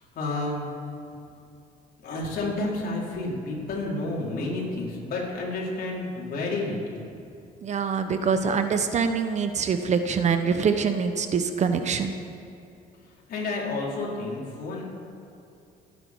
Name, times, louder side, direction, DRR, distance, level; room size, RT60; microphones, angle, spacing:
voice 1, 0.1-0.7 2.0-7.1 13.3-14.8, left 2 dB, 60° left, -4 dB, 4.4 m, -30 dB
voice 2, 7.6-12.1, right 6 dB, 45° right, 8 dB, 1.0 m, -24 dB
26.5 x 9.9 x 4.7 m, 2.6 s
cardioid pair, 110°, 17 cm